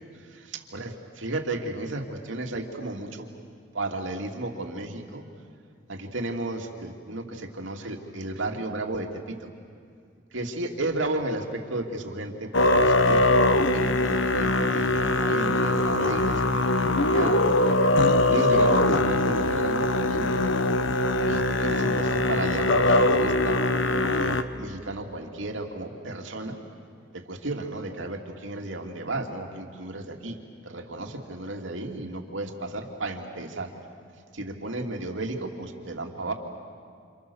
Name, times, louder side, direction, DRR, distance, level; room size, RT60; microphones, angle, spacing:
voice 1, 0.5-3.3 3.7-5.3 5.9-9.5 10.3-17.5 18.3-20.4 21.3-26.5 27.1-30.4 30.6-33.7 34.3-36.3, right 2 dB, 85° right, 2 dB, 2.7 m, -33 dB
Musical instrument, 12.5-24.4, left 2 dB, 85° left, 1.2 m, -22 dB
28.5 x 28.5 x 7.1 m, 2.2 s
head